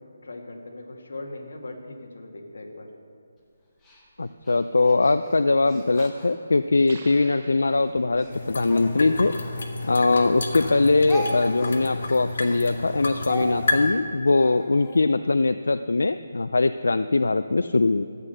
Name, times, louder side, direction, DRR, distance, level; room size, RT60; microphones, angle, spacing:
voice 1, 0.2-2.9, left 2 dB, 65° left, 2 dB, 1.9 m, -39 dB
Speech, 3.8-7.0 7.5-10.3 10.6-15.0, equal, 5° left, 0.9 m, -38 dB
voice 2, 4.2-9.4 9.8-18.0, left 3 dB, 90° left, 11 dB, 0.4 m, -21 dB
sound 1, 6.9-8.4, right 4 dB, 25° right, 0.8 m, -47 dB
sound 2, 8.3-13.9, left 2 dB, 45° left, 1.3 m, -30 dB
13.5 x 8.2 x 6.7 m, 2.3 s
hypercardioid pair, 180°, 0 cm